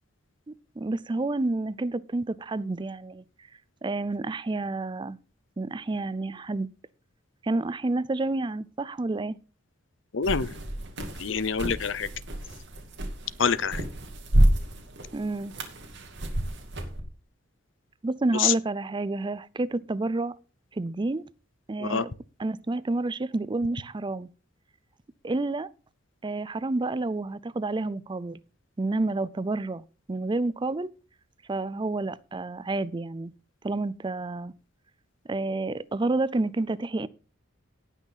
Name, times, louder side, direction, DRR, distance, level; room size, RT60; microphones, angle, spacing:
voice 1, 0.5-3.2 3.8-5.2 5.6-6.7 7.4-9.4 15.1-15.6 18.0-20.4 20.7-21.2 21.7-22.1 22.4-24.3 25.2-25.7 26.2-28.4 28.8-30.9 31.5-33.3 33.6-34.5 35.3-37.1, right 2 dB, 25° right, 0.4 m, -29 dB
voice 2, 10.1-10.6 11.2-12.1 13.4-13.8 18.3-18.5 21.8-22.0, left 6 dB, 65° left, 0.7 m, -26 dB
sound 1, 10.2-17.0, right 1 dB, 60° right, 2.5 m, -29 dB
18.0 x 6.2 x 4.0 m
head